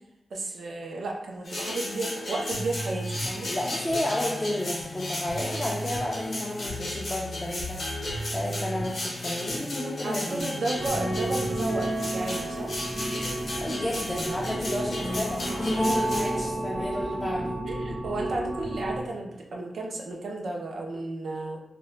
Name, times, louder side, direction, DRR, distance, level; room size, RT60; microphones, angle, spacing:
voice 1, 0.3-3.5 10.0-12.7 17.7-21.6, right 2 dB, 75° right, 0 dB, 0.4 m, -33 dB
sound 1, 1.5-16.5, left 1 dB, 55° left, 0.7 m, -35 dB
sound 2, 2.5-11.6, right 1 dB, 90° left, 0.3 m, -38 dB
voice 2, 3.5-7.8 8.3-10.5 13.6-17.6, left 1 dB, 15° left, -5 dB, 0.3 m, -31 dB
sound 3, 10.7-19.0, right 1 dB, 45° right, 0.8 m, -31 dB
2.1 x 2.1 x 3.6 m, 0.84 s
wide cardioid pair, 155°, 0 cm